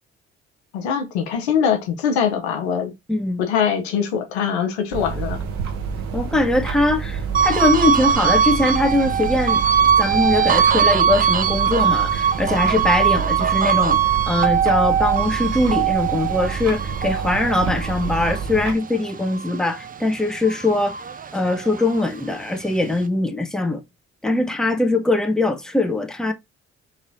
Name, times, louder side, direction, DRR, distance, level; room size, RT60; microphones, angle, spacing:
voice 1, 0.7-2.9 3.4-5.4, left 7 dB, 80° left, 0.9 m, -22 dB
voice 2, 3.1-3.4 6.1-9.6 10.0-14.0 14.3-21.0 21.3-23.8 24.2-26.3, left 2 dB, ahead, 0.9 m, -21 dB
sound 1, 4.9-18.7, right 6 dB, 65° right, 1.1 m, -28 dB
sound 2, 7.3-20.0 20.4-22.1, right 8 dB, 25° right, 0.5 m, -21 dB
4.1 x 3.3 x 2.7 m
hypercardioid pair, 45°, 32 cm